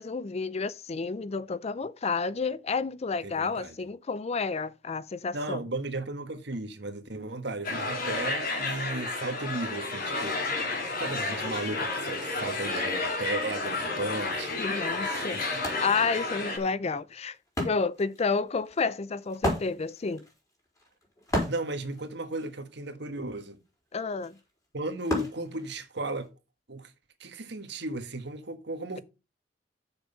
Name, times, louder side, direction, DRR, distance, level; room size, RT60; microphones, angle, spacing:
voice 1, 0.0-5.6 14.6-15.4 15.8-20.2 23.9-24.4, left 4 dB, 35° left, 0.5 m, -30 dB
voice 2, 3.2-3.7 5.3-14.6 15.0-15.5 21.5-23.6 24.7-26.3 26.7-26.9 27.2-29.0, right 2 dB, 65° right, 1.6 m, -35 dB
sound 1, 7.6-16.6, left 3 dB, 50° left, 3.1 m, -31 dB
Wood, 14.6-14.7 15.0-26.3, left 1 dB, 20° left, 4.9 m, -36 dB
7.3 x 6.4 x 6.7 m
head